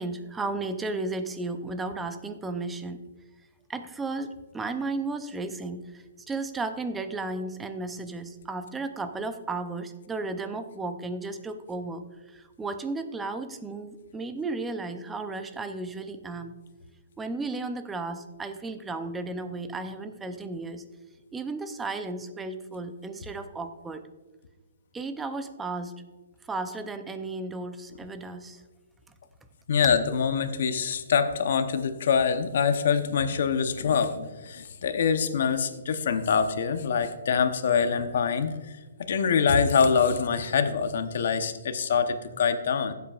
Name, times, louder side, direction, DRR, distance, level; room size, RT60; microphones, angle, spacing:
voice 1, 0.0-3.0 3.7-16.6 17.2-20.8 21.3-24.1 24.9-26.0 26.5-28.6, right 3 dB, 10° right, 9 dB, 0.5 m, -34 dB
voice 2, 29.7-38.5 39.0-42.9, left 6 dB, 60° left, 9 dB, 0.9 m, -25 dB
15.5 x 8.2 x 2.4 m, 1.2 s
hypercardioid pair, 160°, 0 cm